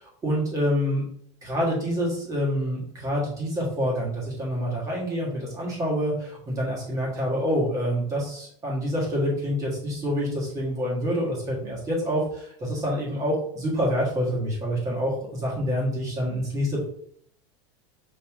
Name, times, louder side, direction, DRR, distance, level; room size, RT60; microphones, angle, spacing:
voice 1, 0.0-1.0 1.4-16.8, equal, 20° right, -4 dB, 1.7 m, -27 dB
5.4 x 3.0 x 3.0 m, 0.65 s
supercardioid pair, 165°, 16 cm